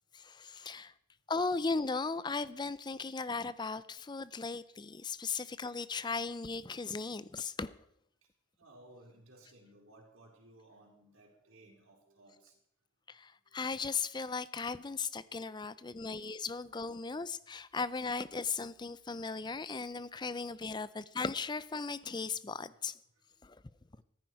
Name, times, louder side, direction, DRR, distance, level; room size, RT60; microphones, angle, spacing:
voice 1, 0.1-0.9 1.3-7.7 13.1-23.0 23.4-23.6, left 4 dB, 20° left, 16 dB, 0.4 m, -37 dB
voice 2, 8.6-12.5 15.4-16.1 22.6-22.7, right 1 dB, 75° right, -1 dB, 4.5 m, -59 dB
15.0 x 14.0 x 4.7 m, 0.74 s
head